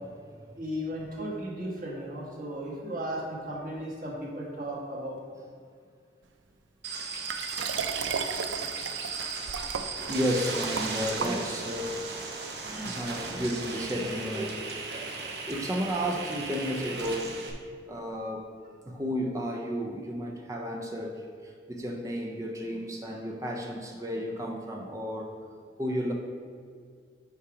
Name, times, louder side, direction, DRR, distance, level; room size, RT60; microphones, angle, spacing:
voice 1, 0.6-5.2 9.4-9.6 9.9-10.0 11.2-11.4 12.5-13.0 13.3-13.4 13.9-14.1 14.3-14.4 14.9-15.0, right 1 dB, 45° right, -4 dB, 1.5 m, -36 dB
sound 1, 6.8-17.5, right 4 dB, 60° right, 0.9 m, -36 dB
Liquid, 7.3-11.8 12.5-12.6, right 6 dB, 85° right, 0.4 m, -35 dB
voice 2, 10.1-12.0 12.7-14.6 15.5-17.4 17.9-18.5 18.8-25.4 25.8-26.1, equal, 15° right, 1 dB, 0.4 m, -32 dB
5.8 x 5.0 x 4.8 m, 2.1 s
head